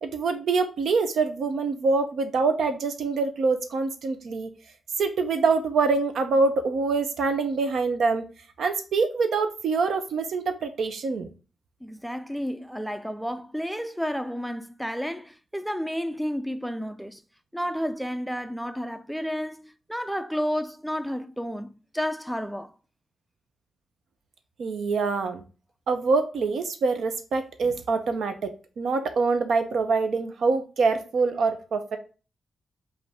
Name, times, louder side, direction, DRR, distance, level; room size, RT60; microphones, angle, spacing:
voice 1, 0.0-4.5 5.0-8.3 8.6-11.3 24.6-25.4 25.9-32.0, right 4 dB, 80° right, 0.7 m, -25 dB
voice 2, 11.8-17.2 17.5-22.8, equal, ahead, 0.3 m, -31 dB
5.1 x 2.6 x 3.3 m
cardioid pair, 85°, 0 cm